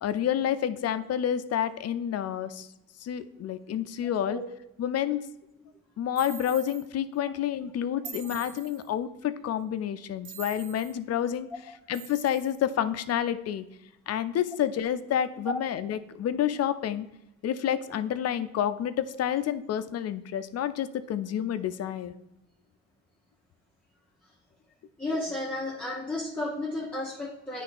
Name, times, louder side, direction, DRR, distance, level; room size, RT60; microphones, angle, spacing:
voice 1, 0.0-2.7 3.0-4.4 4.8-5.2 6.0-11.5 11.9-13.7 14.1-17.1 17.4-22.1, left 10 dB, 55° left, 12 dB, 0.5 m, -29 dB
sound 1, 6.2-6.9 8.0-8.9 10.2-11.0 11.9-12.6, right 8 dB, 75° right, 0.7 m, -44 dB
voice 2, 25.0-27.6, left 2 dB, 5° left, -4 dB, 1.0 m, -33 dB
9.5 x 3.3 x 4.1 m, 0.89 s
cardioid pair, 90°, 30 cm